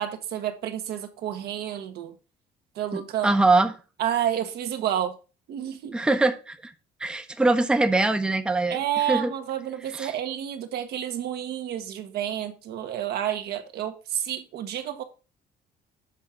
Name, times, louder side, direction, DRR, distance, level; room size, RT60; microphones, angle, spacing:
voice 1, 0.0-2.1 2.7-3.3 4.0-5.1 5.5-6.0 8.7-15.0, right 10 dB, 70° right, 1.1 m, -30 dB
voice 2, 2.9-3.7 5.9-6.7 7.0-8.8 9.1-9.3 9.9-10.1, right 2 dB, 5° right, 0.7 m, -22 dB
7.3 x 3.6 x 5.6 m
cardioid pair, 110°, 17 cm